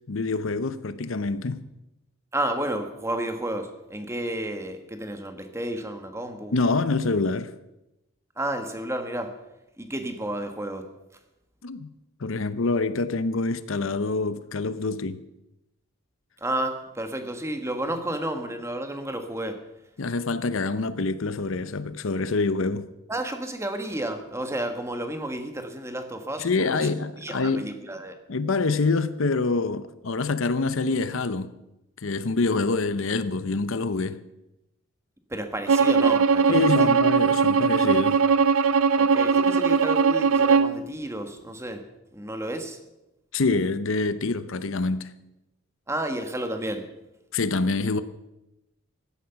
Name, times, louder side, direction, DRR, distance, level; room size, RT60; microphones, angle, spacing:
voice 1, 0.1-1.6 6.5-7.5 11.6-11.9 12.2-15.2 20.0-22.9 26.4-27.7 28.3-31.5 32.0-34.2 36.5-38.2 43.3-45.1 47.3-48.0, left 3 dB, 65° left, 0.7 m, -26 dB
voice 2, 2.3-6.5 8.4-9.3 9.8-10.9 16.4-19.6 23.1-26.9 27.2-28.2 35.3-36.9 38.9-41.8 42.1-42.8 45.9-46.9, right 1 dB, 15° right, 1.5 m, -31 dB
Bowed string instrument, 35.7-40.8, right 5 dB, 75° right, 0.6 m, -20 dB
16.0 x 12.0 x 5.9 m
head